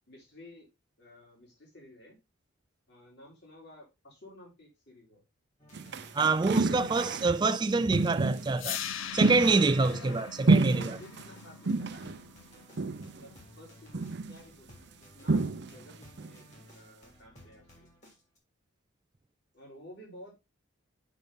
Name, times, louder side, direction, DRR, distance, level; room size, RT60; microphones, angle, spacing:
voice 1, 0.1-0.7 1.0-2.2 2.9-5.2 6.5-6.9 9.2-9.5 9.8-12.1 13.2-14.8 15.1-17.9 19.5-20.3, left 1 dB, 50° left, 3.3 m, -53 dB
sound 1, 5.6-18.4, left 1 dB, 35° left, 2.4 m, -56 dB
sound 2, 5.7-7.5 7.9-8.5 9.2-10.2 10.5-11.2 11.7-12.2 12.8-13.2 13.9-14.4 15.3-15.9 16.2-16.4, right 3 dB, 55° right, 0.6 m, -28 dB
voice 2, 6.1-8.8 9.1-11.0, right 3 dB, 20° right, 0.3 m, -26 dB
sound 3, 8.6-14.6, left 8 dB, 70° left, 0.6 m, -42 dB
8.4 x 5.4 x 3.5 m
head